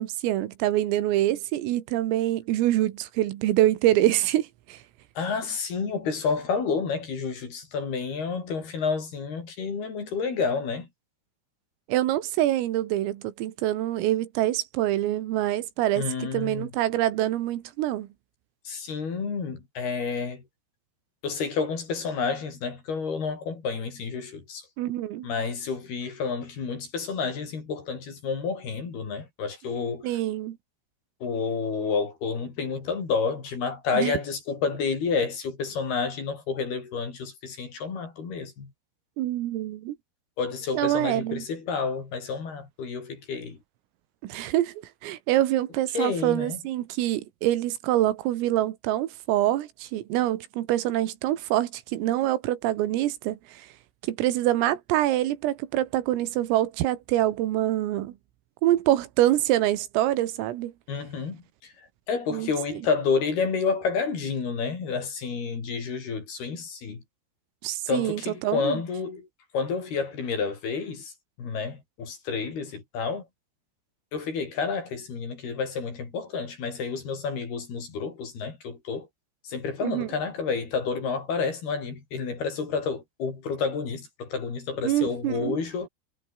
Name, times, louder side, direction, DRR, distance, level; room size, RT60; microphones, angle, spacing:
voice 1, 0.0-4.8 11.9-18.1 24.8-25.3 30.0-30.6 33.9-34.1 39.2-40.0 40.7-41.4 44.2-53.7 54.0-58.1 58.6-60.7 62.3-62.8 67.6-68.8 79.8-80.1 84.8-85.6, right 14 dB, 80° right, 4.3 m, -25 dB
voice 2, 5.2-10.9 16.0-16.7 18.7-20.4 21.2-24.7 25.2-30.2 31.2-38.7 40.4-43.6 45.9-46.6 60.9-61.7 62.1-67.0 67.9-69.3 69.5-71.1 71.4-73.3 74.1-79.1 79.5-85.9, left 5 dB, 50° left, 7.0 m, -30 dB
omnidirectional pair, 5.9 m